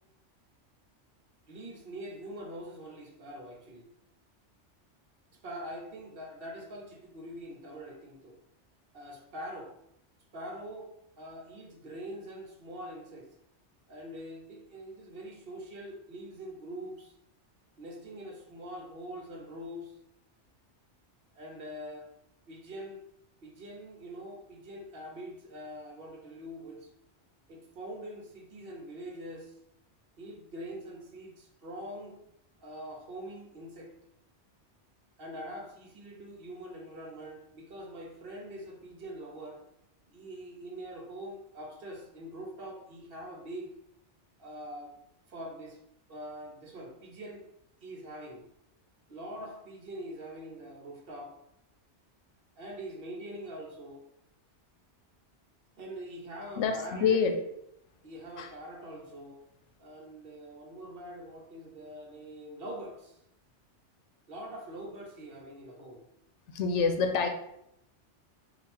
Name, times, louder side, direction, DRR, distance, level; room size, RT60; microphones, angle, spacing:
voice 1, 1.5-3.9 5.4-8.4 8.9-9.7 10.3-13.3 13.9-17.1 17.8-20.0 21.3-22.1 22.5-23.0 23.4-26.9 27.5-29.6 30.2-32.2 32.6-33.9 35.2-39.6 40.1-43.7 44.4-44.9 45.3-45.8 46.1-47.4 47.8-48.4 49.1-51.4 52.6-54.0 55.8-57.2 58.0-59.4 59.8-63.2 64.3-66.0, right 1 dB, 55° right, 1 dB, 0.9 m, -44 dB
voice 2, 56.6-57.3 58.4-58.5 66.5-67.3, left 5 dB, 85° left, 5 dB, 0.9 m, -26 dB
3.7 x 2.5 x 4.2 m, 0.78 s
omnidirectional pair, 1.2 m